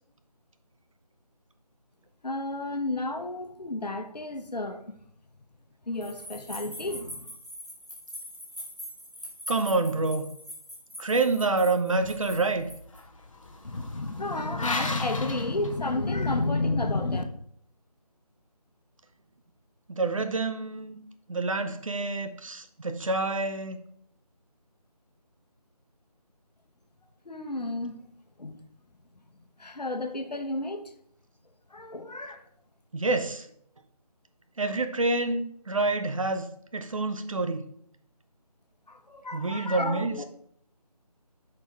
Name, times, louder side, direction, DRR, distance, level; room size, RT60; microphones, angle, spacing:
voice 1, 2.2-4.9 5.9-7.3 13.6-17.2 27.2-28.0 28.4-28.6 29.6-30.8 31.7-32.4 38.9-40.2, left 2 dB, 75° left, 1.2 m, -31 dB
sound 1, 6.0-13.0, equal, ahead, 0.5 m, -42 dB
voice 2, 9.5-10.3 11.0-12.7 19.9-21.0 21.3-23.8 32.9-33.5 34.6-36.5 36.7-37.7 39.3-40.2, right 3 dB, 55° right, 0.8 m, -27 dB
sound 2, 12.0-16.4, left 2 dB, 50° left, 1.1 m, -38 dB
8.2 x 5.4 x 3.5 m
figure-of-eight pair, 165°, 21 cm